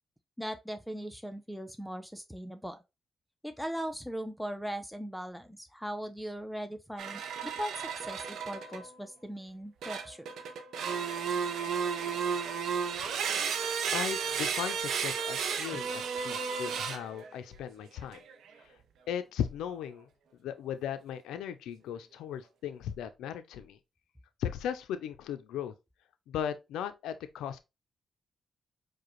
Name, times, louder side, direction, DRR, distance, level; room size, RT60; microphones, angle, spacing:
voice 1, 0.4-2.8 3.4-10.3, equal, ahead, 0.5 m, -39 dB
sound 1, 7.0-8.9 9.8-17.3 18.0-18.3, right 6 dB, 80° right, 0.5 m, -33 dB
voice 2, 13.9-18.2 19.1-20.1 20.4-23.8 24.4-25.7 26.3-27.6, left 9 dB, 90° left, 0.4 m, -37 dB
4.7 x 2.1 x 3.0 m
supercardioid pair, 60°, 0 cm